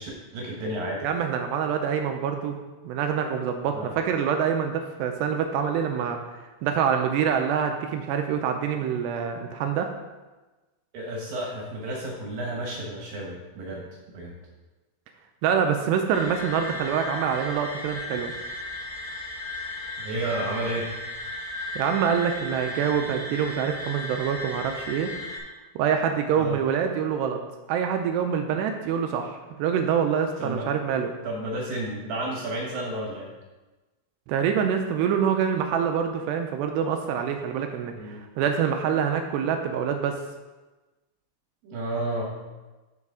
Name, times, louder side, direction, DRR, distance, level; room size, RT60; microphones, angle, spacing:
voice 1, 0.0-1.0 3.7-3.9 10.9-13.8 14.1-14.3 20.0-20.9 26.3-26.6 30.4-30.7 31.2-33.3 37.9-38.2 41.6-42.2, right 1 dB, 65° right, -2 dB, 2.4 m, -32 dB
voice 2, 1.0-2.6 2.8-9.9 15.4-18.3 21.8-25.1 25.8-27.4 27.7-31.1 34.3-40.2, right 7 dB, 85° right, 5 dB, 2.5 m, -26 dB
sound 1, 16.1-25.4, left 1 dB, 75° left, 5.6 m, -35 dB
13.5 x 5.5 x 3.7 m, 1.2 s
omnidirectional pair, 5.5 m